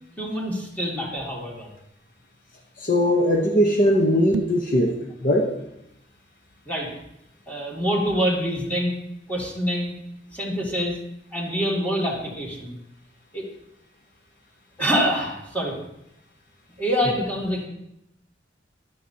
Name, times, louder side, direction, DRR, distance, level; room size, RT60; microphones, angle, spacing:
voice 1, 0.2-1.7 6.7-6.9 7.5-9.0 9.3-9.9 10.3-11.0 11.3-12.8 13.3-13.5 14.8-15.8 16.8-17.7, equal, 10° left, -3 dB, 2.5 m, -25 dB
voice 2, 2.8-4.9 5.2-5.5, equal, 50° left, 1 dB, 1.1 m, -20 dB
sound 1, 4.2-4.7, right 5 dB, 90° right, 0.4 m, -32 dB
13.5 x 11.0 x 2.9 m, 0.82 s
head